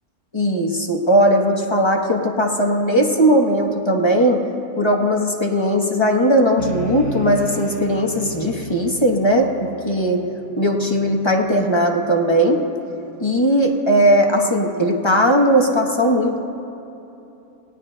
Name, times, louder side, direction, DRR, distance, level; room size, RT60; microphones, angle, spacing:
voice 1, 0.3-4.4 4.8-10.2 10.6-12.6 13.2-16.4, equal, 20° left, 1 dB, 0.9 m, -18 dB
sound 1, 6.6-12.2, equal, 90° right, 4.1 m, -35 dB
28.0 x 18.0 x 2.2 m, 2.9 s
omnidirectional pair, 1.7 m